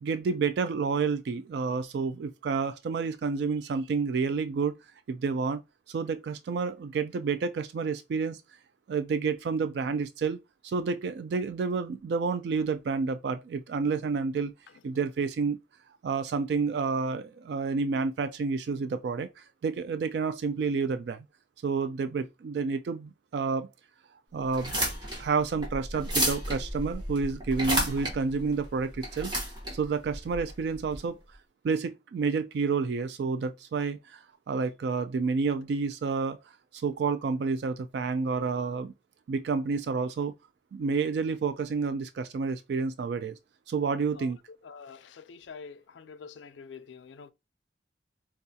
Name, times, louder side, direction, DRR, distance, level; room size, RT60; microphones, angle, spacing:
voice 1, 0.0-4.7 5.1-5.6 5.9-8.4 8.9-14.5 14.8-15.6 16.0-21.2 21.6-23.7 24.3-24.8 25.2-29.3 29.7-31.2 31.6-36.4 36.7-38.9 39.3-40.3 40.7-43.3 43.7-44.4, right 5 dB, 70° right, 0.3 m, -29 dB
sound 1, 24.5-31.0, right 1 dB, 25° right, 1.4 m, -32 dB
voice 2, 44.6-47.3, left 5 dB, 90° left, 0.4 m, -46 dB
4.5 x 2.3 x 2.7 m
head